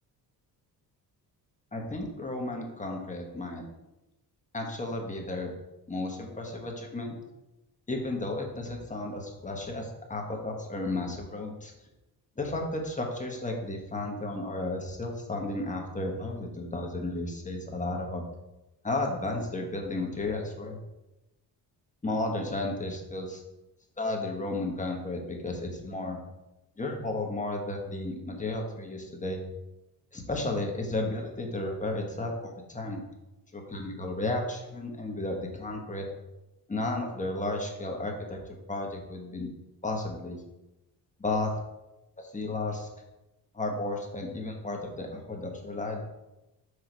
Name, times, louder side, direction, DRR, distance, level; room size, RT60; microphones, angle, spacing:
voice 1, 1.7-3.6 4.5-5.5 5.9-7.1 7.9-11.7 12.4-18.2 18.8-20.8 22.0-23.4 24.0-26.2 26.8-29.4 30.1-33.0 33.5-36.1 36.7-38.4 38.7-39.5 39.8-40.4 41.2-41.5 42.2-42.9 43.5-46.0, left 2 dB, 20° left, 1 dB, 1.4 m, -33 dB
5.6 x 4.9 x 4.7 m, 0.98 s
cardioid pair, 95°, 39 cm